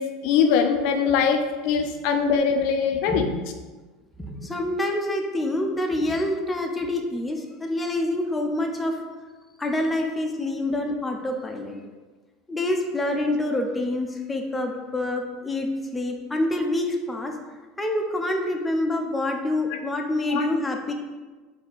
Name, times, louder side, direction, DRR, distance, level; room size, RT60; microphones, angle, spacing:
voice 1, 0.0-3.3 20.3-20.5, left 6 dB, 65° left, 5 dB, 0.4 m, -22 dB
voice 2, 4.2-9.0 9.6-11.8 12.5-17.3 17.8-20.9, left 1 dB, 15° left, 2 dB, 0.6 m, -26 dB
4.3 x 2.8 x 4.0 m, 1.3 s
supercardioid pair, 110°, 0 cm